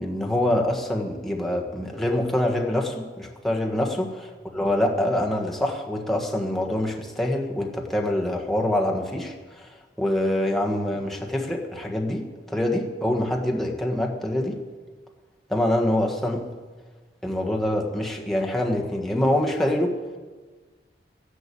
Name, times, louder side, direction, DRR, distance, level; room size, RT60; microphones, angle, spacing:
voice 1, 0.0-9.7 10.0-14.6 15.5-16.5 17.2-20.0, left 1 dB, ahead, 0 dB, 1.5 m, -25 dB
13.0 x 11.0 x 8.5 m, 1.4 s
head